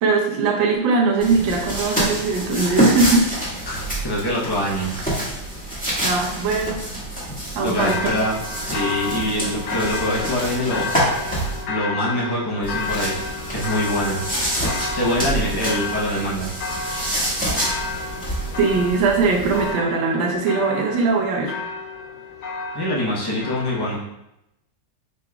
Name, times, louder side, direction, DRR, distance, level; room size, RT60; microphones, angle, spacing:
voice 1, 0.0-3.3 6.0-6.8 7.5-8.1 18.6-21.5, right 4 dB, 90° right, 1 dB, 1.5 m, -20 dB
sound 1, 1.2-11.6 12.6-19.7, right 1 dB, 5° left, 1.3 m, -27 dB
voice 2, 3.7-5.0 7.6-10.9 11.7-14.2 14.9-16.5 22.7-24.0, equal, 40° left, -5 dB, 0.3 m, -24 dB
sound 2, 7.8-23.9, left 4 dB, 70° left, 1.2 m, -31 dB
5.0 x 3.9 x 2.3 m, 0.85 s
omnidirectional pair, 2.0 m